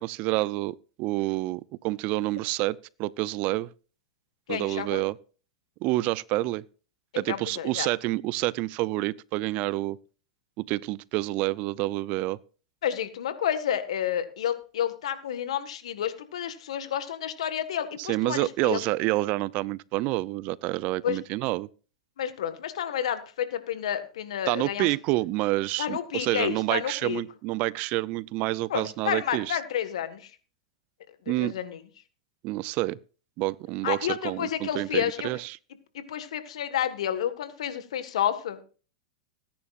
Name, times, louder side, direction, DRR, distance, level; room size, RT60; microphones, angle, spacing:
voice 1, 0.0-3.7 4.5-5.2 5.8-6.6 7.2-10.0 10.6-12.4 18.0-21.7 24.5-29.6 31.3-31.5 32.4-33.0 33.4-35.6, right 19 dB, 50° right, 0.5 m, -28 dB
voice 2, 4.5-5.0 7.1-7.9 12.8-18.8 21.0-21.2 22.2-24.9 25.8-27.2 28.7-30.3 31.4-31.8 33.8-35.3 35.9-38.6, left 10 dB, 75° left, 1.6 m, -30 dB
19.5 x 10.0 x 2.5 m
hypercardioid pair, 105°, 3 cm